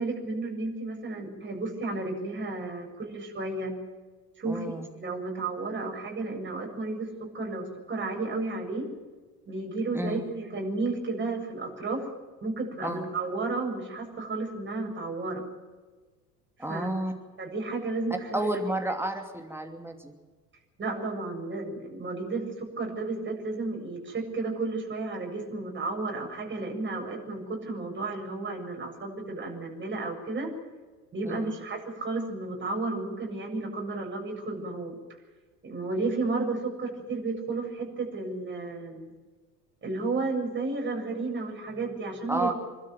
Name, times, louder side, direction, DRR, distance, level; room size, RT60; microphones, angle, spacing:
voice 1, 0.0-3.7 4.4-8.9 9.5-12.1 12.4-15.4 16.6-16.9 17.4-18.6 20.8-30.5 31.1-35.0 35.6-39.1 39.8-42.5, right 3 dB, 25° right, 0 dB, 7.6 m, -32 dB
voice 2, 4.5-4.9 9.9-10.3 12.8-13.0 16.6-17.1 18.3-20.1 31.2-31.5 42.3-42.5, right 1 dB, 5° right, 4 dB, 2.7 m, -31 dB
27.0 x 13.0 x 9.3 m, 1.3 s
figure-of-eight pair, 70°, 47 cm